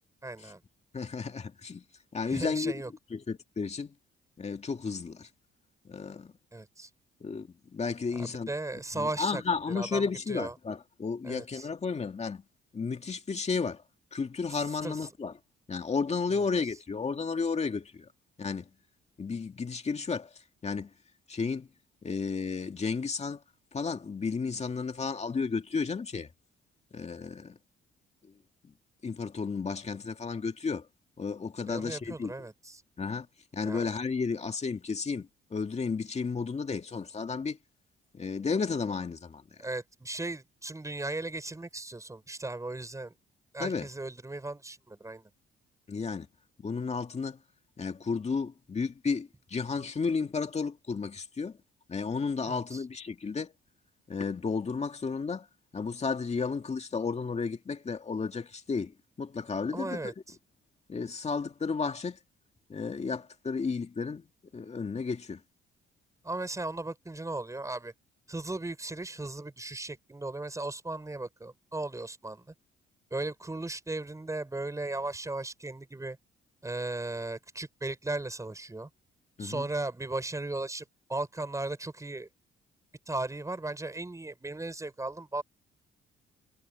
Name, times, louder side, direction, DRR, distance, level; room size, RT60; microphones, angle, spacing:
voice 1, 0.2-0.6 2.3-2.9 6.5-6.9 8.1-9.4 9.7-10.5 11.2-11.7 14.7-15.1 16.3-16.5 31.7-32.8 33.6-33.9 39.6-43.1 43.5-45.2 52.5-52.8 59.7-60.4 66.2-67.9 68.3-72.5 73.1-76.2 76.6-78.9 79.4-82.3 83.1-85.4, right 2 dB, 15° right, 6.2 m, -36 dB
voice 2, 0.9-1.8 2.1-2.7 3.1-3.9 4.4-5.3 5.8-6.3 7.2-8.5 8.9-12.4 12.7-13.8 14.1-15.3 15.7-18.1 18.4-18.7 19.2-20.3 20.6-20.9 21.3-21.7 22.0-23.4 23.7-26.3 26.9-27.6 28.6-28.7 29.0-30.9 31.2-32.3 33.0-33.3 33.5-37.6 38.1-39.4 43.6-43.9 45.9-46.3 46.6-47.4 47.8-51.6 51.9-53.5 54.1-55.5 55.7-60.0 60.9-62.2 62.7-64.2 64.5-65.4 79.4-79.7, left 5 dB, 35° left, 2.3 m, -33 dB
cardioid pair, 90°, 20 cm